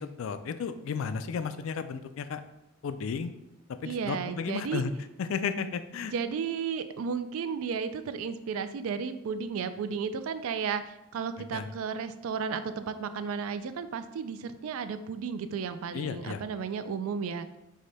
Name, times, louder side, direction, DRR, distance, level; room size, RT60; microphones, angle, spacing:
voice 1, 0.0-2.4 2.8-3.3 3.7-4.9 5.2-6.1 11.5-11.7 15.9-16.4, left 6 dB, 70° left, 11 dB, 0.3 m, -33 dB
voice 2, 3.9-4.8 6.1-17.5, right 6 dB, 80° right, 11 dB, 0.3 m, -33 dB
4.9 x 2.2 x 4.0 m, 0.90 s
head